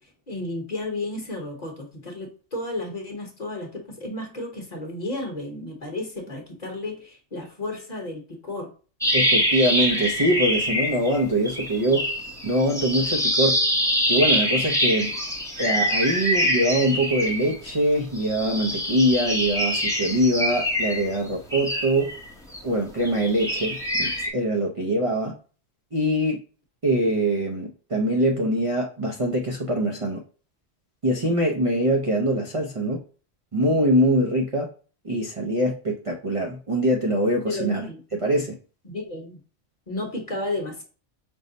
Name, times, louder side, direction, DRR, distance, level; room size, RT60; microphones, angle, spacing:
voice 1, 0.3-8.7 37.4-38.0 38.8-39.4 39.9-40.8, left 2 dB, 35° left, 1 dB, 1.1 m, -32 dB
sound 1, 9.0-11.2 11.5-17.7 18.2-22.6 23.0-24.3, equal, 5° left, 0.6 m, -25 dB
voice 2, 9.1-12.1 12.4-13.6 14.1-15.1 15.6-22.1 22.6-25.3 25.9-26.4 26.8-30.2 31.0-33.0 33.5-34.7 35.0-37.9 38.2-38.5, right 1 dB, 40° right, 0 dB, 0.5 m, -23 dB
5.4 x 2.1 x 3.8 m, 0.38 s
omnidirectional pair, 1.2 m